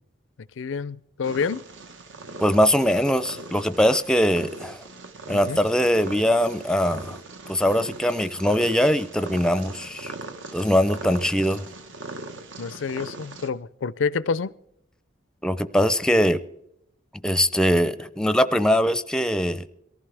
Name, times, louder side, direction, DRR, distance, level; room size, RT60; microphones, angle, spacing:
voice 1, 0.6-1.6 5.3-5.6 12.6-14.5, left 5 dB, 80° left, 20 dB, 0.5 m, -28 dB
Purr, 1.2-13.5, right 3 dB, 75° right, 1.3 m, -40 dB
voice 2, 2.4-4.8 5.3-7.2 7.5-10.1 10.5-11.6 15.4-16.4 17.2-19.6, equal, 5° left, 12 dB, 0.5 m, -21 dB
22.5 x 15.0 x 3.4 m, 0.79 s
head